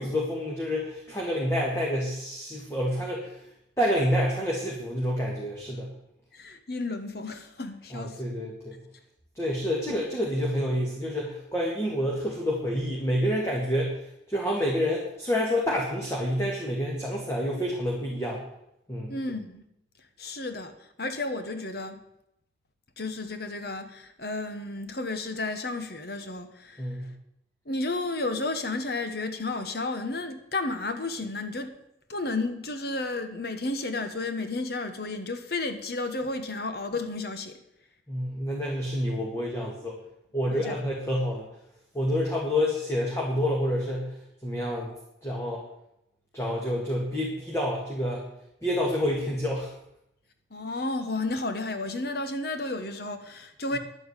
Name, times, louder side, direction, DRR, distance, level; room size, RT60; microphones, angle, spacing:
voice 1, 0.0-3.5 3.8-5.9 7.9-8.8 9.4-18.4 18.9-19.2 26.8-27.1 38.1-40.0 40.3-41.5 41.9-44.9 45.2-45.6 46.3-48.3 48.6-49.7, equal, 15° left, -3 dB, 2.1 m, -28 dB
voice 2, 6.3-8.2 9.9-10.0 19.1-19.6 20.2-22.0 23.0-27.1 27.6-31.8 32.1-37.6 40.5-40.8 50.5-53.8, left 2 dB, 55° left, 8 dB, 1.3 m, -32 dB
10.5 x 8.8 x 8.2 m, 0.80 s
head